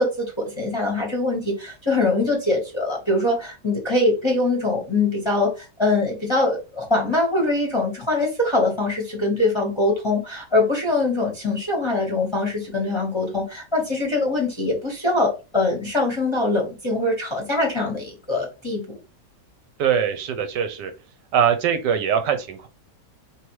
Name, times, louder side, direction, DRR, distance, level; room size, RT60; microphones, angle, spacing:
voice 1, 0.0-18.8, left 2 dB, 20° left, 0.9 m, -23 dB
voice 2, 19.8-20.9 21.3-22.7, right 8 dB, 75° right, 1.2 m, -22 dB
4.6 x 3.3 x 3.0 m
omnidirectional pair, 2.0 m